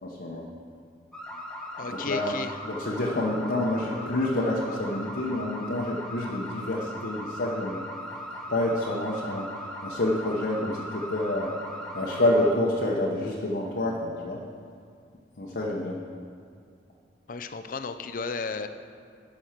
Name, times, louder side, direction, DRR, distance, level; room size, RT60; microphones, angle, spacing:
voice 1, 0.0-0.5 1.9-2.4 2.6-7.9 8.5-9.5 9.8-11.6 11.9-14.4 15.4-16.0, left 1 dB, 65° left, -4 dB, 1.0 m, -28 dB
sound 1, 1.1-12.5, equal, 5° left, 0.9 m, -39 dB
voice 2, 1.8-2.6 17.3-18.7, left 4 dB, 50° left, 9 dB, 0.5 m, -34 dB
11.5 x 6.3 x 5.8 m, 2.2 s
head